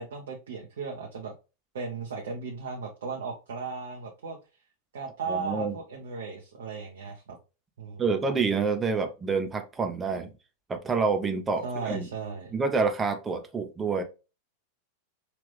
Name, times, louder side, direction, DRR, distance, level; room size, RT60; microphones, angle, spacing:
voice 1, 0.0-1.3 1.7-4.4 4.9-7.4 7.8-8.2 11.6-12.5, right 4 dB, 60° right, 1 dB, 0.9 m, -36 dB
voice 2, 5.3-5.7 8.0-10.3 10.7-12.1 12.5-14.0, right 4 dB, 15° right, 6 dB, 0.9 m, -27 dB
5.4 x 2.9 x 3.3 m, 0.30 s
figure-of-eight pair, 90°, 0 cm